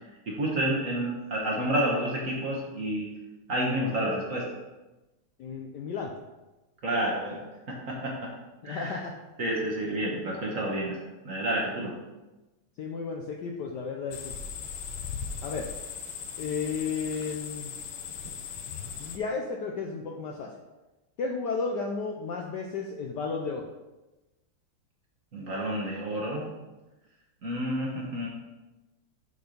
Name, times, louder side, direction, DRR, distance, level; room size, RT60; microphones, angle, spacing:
voice 1, 0.3-3.1 3.5-4.4 6.8-7.4 7.7-8.3 8.6-9.0 9.4-11.0 11.2-11.9 25.3-26.4 27.4-28.3, right 1 dB, 45° right, -3 dB, 1.3 m, -29 dB
voice 2, 5.4-6.2 8.6-9.1 12.8-14.4 15.4-15.7 16.4-17.7 19.0-20.5 21.2-23.7, left 4 dB, 70° left, 1 dB, 1.0 m, -33 dB
sound 1, 14.1-19.2, left 6 dB, 85° left, 1.6 m, -38 dB
6.7 x 4.5 x 5.1 m, 1.1 s
omnidirectional pair, 2.4 m